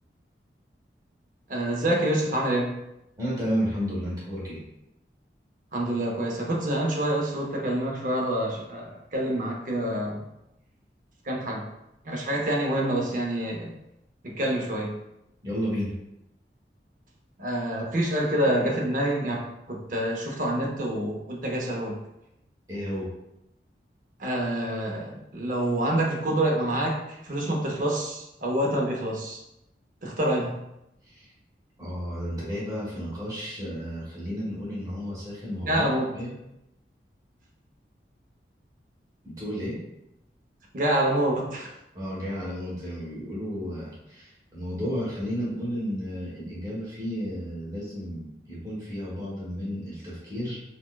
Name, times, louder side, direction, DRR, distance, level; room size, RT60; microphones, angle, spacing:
voice 1, 1.5-2.7 5.7-10.2 11.2-11.6 12.0-13.7 14.2-15.0 17.4-22.0 24.2-29.4 30.0-30.6 35.6-36.1 40.7-41.7, right 1 dB, 45° right, -1 dB, 0.6 m, -27 dB
voice 2, 3.2-4.6 15.4-15.9 22.7-23.1 31.1-31.3 31.8-35.8 36.1-36.3 39.2-39.8 41.9-50.7, equal, 20° right, -7 dB, 1.1 m, -32 dB
4.2 x 2.2 x 2.3 m, 0.86 s
head